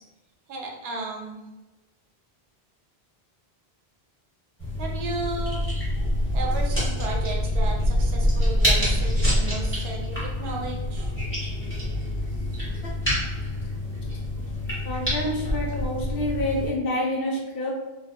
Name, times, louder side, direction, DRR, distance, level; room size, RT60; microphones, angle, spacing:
voice 1, 0.5-1.4 4.8-5.6 6.3-11.1, right 3 dB, 80° right, 0 dB, 0.8 m, -34 dB
sound 1, 4.6-16.7, left 1 dB, 10° left, 1.0 m, -26 dB
voice 2, 14.8-17.7, left 1 dB, 65° left, -2 dB, 0.8 m, -28 dB
2.7 x 2.3 x 2.2 m, 1.1 s
omnidirectional pair, 1.0 m